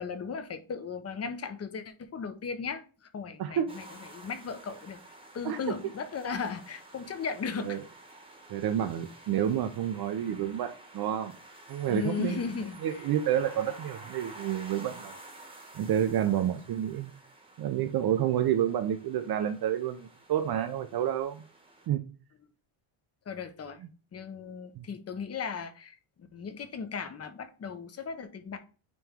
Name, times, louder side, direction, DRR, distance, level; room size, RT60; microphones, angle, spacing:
voice 1, 0.0-5.0 5.3-7.8 11.9-13.1 13.4-13.8 16.2-16.4 23.3-23.8 24.1-28.6, left 5 dB, 30° left, 0.7 m, -37 dB
voice 2, 3.4-3.7 5.4-5.6 7.6-7.8 8.5-11.4 11.7-12.4 12.8-15.1 15.7-17.1 17.6-21.4 21.9-22.0 24.8-24.9, right 10 dB, 50° right, 0.6 m, -29 dB
sound 1, 3.7-21.9, right 2 dB, 10° right, 1.1 m, -51 dB
9.1 x 3.1 x 3.5 m
cardioid pair, 170°, 49 cm